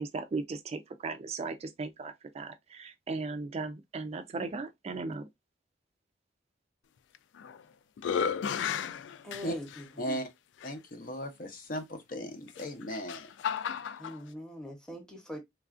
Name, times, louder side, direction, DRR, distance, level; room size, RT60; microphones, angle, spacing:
voice 1, 0.0-5.3, right 3 dB, 35° right, 0.3 m, -37 dB
sound 1, 7.1-7.6 8.0-9.8 10.6-10.7 12.5-14.2, left 7 dB, 85° left, 0.3 m, -33 dB
voice 2, 9.2-9.6 14.0-15.4, equal, 5° left, 0.8 m, -42 dB
voice 3, 10.0-10.3 10.6-13.3, equal, 50° left, 0.7 m, -37 dB
3.2 x 2.4 x 2.4 m
head